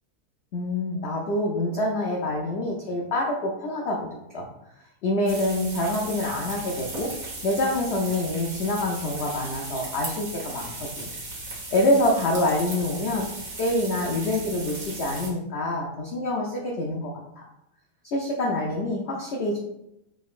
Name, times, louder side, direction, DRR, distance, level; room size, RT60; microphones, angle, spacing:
voice 1, 0.5-4.5 5.0-7.1 7.4-11.1 11.7-13.3 13.6-17.4 18.0-19.6, left 1 dB, 90° left, -1 dB, 0.5 m, -26 dB
sound 1, 5.3-15.3, right 2 dB, 55° right, 1.7 m, -37 dB
5.1 x 3.9 x 2.4 m, 0.87 s
omnidirectional pair, 1.8 m